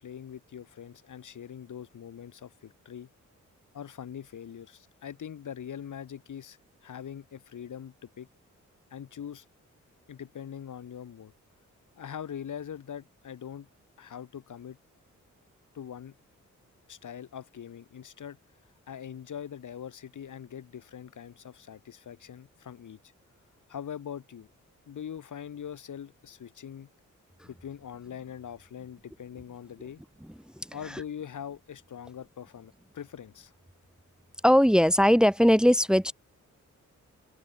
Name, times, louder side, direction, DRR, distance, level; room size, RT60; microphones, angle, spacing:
voice 1, 0.0-3.1 3.7-8.3 8.9-9.5 10.1-11.3 12.0-13.7 14.0-14.8 15.7-16.2 16.9-18.4 18.9-23.0 23.7-24.5 24.9-26.9 27.5-30.0 30.7-33.5, left 8 dB, 75° left, 1.9 m, -42 dB
voice 2, 34.4-36.1, equal, ahead, 1.2 m, -20 dB
open air
cardioid pair, 65°, 31 cm